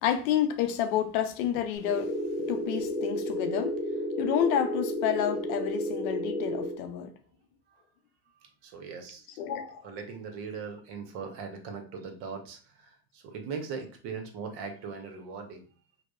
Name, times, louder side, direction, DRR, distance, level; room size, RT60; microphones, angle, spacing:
voice 1, 0.0-2.2 2.5-3.8 4.2-7.2 9.4-9.9, left 9 dB, 85° left, 0.5 m, -29 dB
sound 1, 1.8-6.7, equal, 10° left, 1.0 m, -32 dB
voice 2, 8.6-15.6, right 5 dB, 60° right, 0.8 m, -40 dB
2.6 x 2.1 x 2.3 m
supercardioid pair, 100°, 42 cm